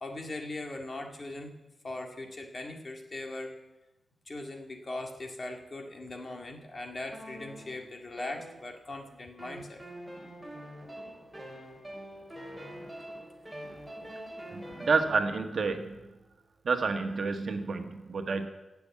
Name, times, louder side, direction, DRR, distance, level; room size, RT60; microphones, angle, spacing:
voice 1, 0.0-1.5 1.8-3.5 4.3-9.8 12.7-12.8 14.7-14.8, left 2 dB, 35° left, 3 dB, 2.1 m, -40 dB
sound 1, 7.1-9.0 9.4-15.2, equal, 5° right, 3.7 m, -45 dB
voice 2, 14.5-16.1 16.6-18.5, right 4 dB, 55° right, 6 dB, 1.4 m, -29 dB
16.5 x 7.0 x 8.4 m, 1.0 s
wide cardioid pair, 110°, 0 cm